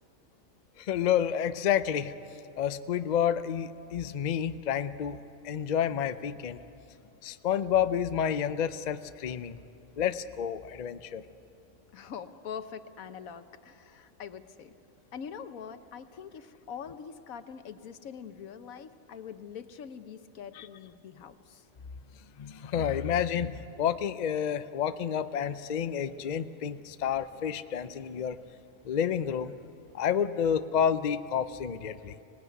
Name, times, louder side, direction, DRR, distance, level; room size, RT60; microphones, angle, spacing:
voice 1, 0.8-2.1 2.6-5.2 5.4-6.6 7.2-9.6 10.0-11.2 20.6-20.7 22.4-28.4 28.8-29.6 29.9-32.1, left 8 dB, 45° left, 12 dB, 0.6 m, -29 dB
voice 2, 11.9-14.7 15.1-21.7, left 7 dB, 90° left, 10 dB, 1.4 m, -43 dB
25.5 x 18.0 x 9.4 m, 2.8 s
omnidirectional pair, 1.4 m